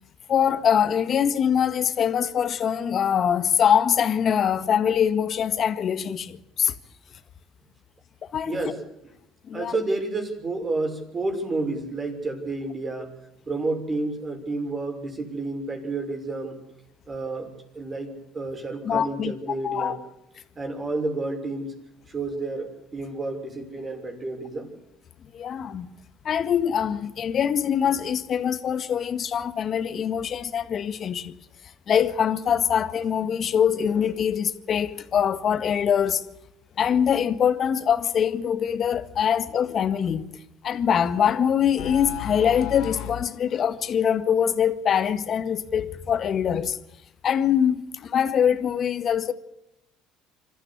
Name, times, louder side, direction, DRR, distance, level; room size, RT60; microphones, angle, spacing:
voice 1, 0.3-6.7 8.3-8.6 9.5-9.8 18.8-19.3 19.6-20.0 25.3-25.9 26.3-31.4 31.9-36.2 36.8-40.3 40.6-46.8 47.2-49.3, left 8 dB, 50° left, 1.7 m, -23 dB
voice 2, 8.4-8.8 9.5-13.1 13.5-16.6 17.1-20.0 20.6-21.7 22.1-24.7 39.2-39.3, right 2 dB, 30° right, 6.2 m, -30 dB
sound 1, 41.2-43.3, left 12 dB, 70° left, 1.3 m, -34 dB
26.0 x 14.0 x 8.6 m
supercardioid pair, 80°, 0 cm